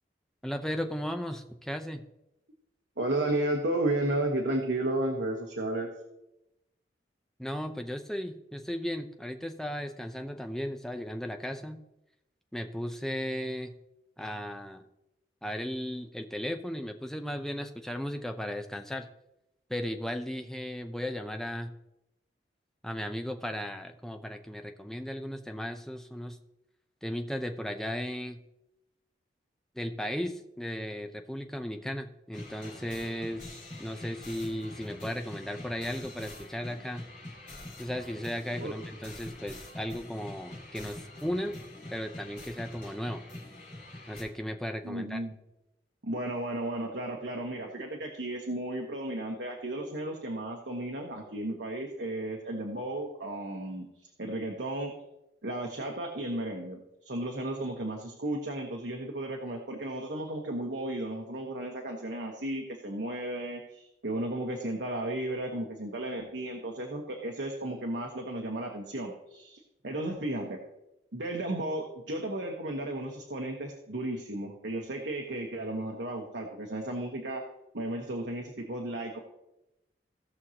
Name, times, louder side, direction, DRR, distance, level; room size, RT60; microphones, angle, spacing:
voice 1, 0.4-2.0 7.4-11.8 12.5-13.8 14.2-14.8 15.4-19.1 19.7-21.7 22.8-26.4 27.0-28.4 29.8-33.4 33.8-37.1 37.8-41.6 41.9-43.2 44.1-45.2, equal, 5° left, 5 dB, 0.6 m, -36 dB
voice 2, 3.0-5.9 38.6-38.7 44.8-45.3 46.0-54.9 55.4-70.6 71.1-77.4 77.7-79.2, right 1 dB, 80° right, 1 dB, 1.2 m, -34 dB
sound 1, 32.3-44.2, left 1 dB, 45° left, 4.0 m, -45 dB
16.5 x 6.3 x 2.9 m, 0.88 s
head